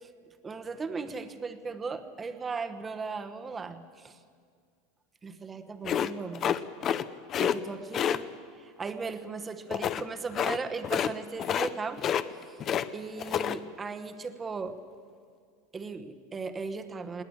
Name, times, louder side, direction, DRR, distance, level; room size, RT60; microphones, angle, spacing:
voice 1, 0.4-4.2 5.2-6.6 7.4-8.3 8.5-12.0 12.3-12.6 12.9-14.8 15.7-17.2, right 4 dB, 15° right, 9 dB, 1.1 m, -37 dB
sound 1, 5.8-7.0 7.3-7.6 7.9-8.2 9.7-10.0 10.3-10.6 10.8-11.1 11.4-11.7 12.0-12.9 13.2-13.6, left 9 dB, 25° left, 0.7 m, -28 dB
21.0 x 18.5 x 8.9 m, 2.1 s
supercardioid pair, 165°, 0 cm